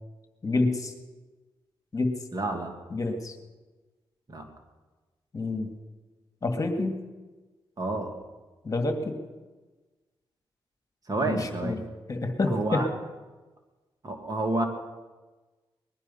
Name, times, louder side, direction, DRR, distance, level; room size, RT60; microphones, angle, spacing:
voice 1, 0.4-0.9 1.9-2.2 2.9-3.4 5.3-5.7 6.4-7.0 8.6-9.1 11.2-11.8 12.1-12.9, left 2 dB, 40° left, 5 dB, 2.0 m, -28 dB
voice 2, 2.3-2.7 4.3-4.5 7.8-8.1 11.1-11.7 12.5-12.9 14.0-14.6, right 2 dB, 40° right, 3 dB, 2.5 m, -29 dB
20.0 x 11.5 x 5.5 m, 1.3 s
cardioid pair, 70°, 9 cm